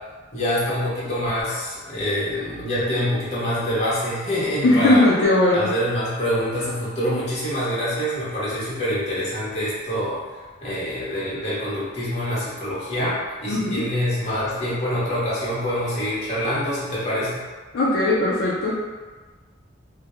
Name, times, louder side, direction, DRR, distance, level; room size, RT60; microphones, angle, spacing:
voice 1, 0.3-5.0 5.5-10.2 10.6-17.4, equal, 35° left, -9 dB, 0.7 m, -25 dB
voice 2, 4.6-5.7 13.5-13.8 17.7-18.8, left 1 dB, 65° left, -7 dB, 0.4 m, -19 dB
2.1 x 2.1 x 2.9 m, 1.4 s
head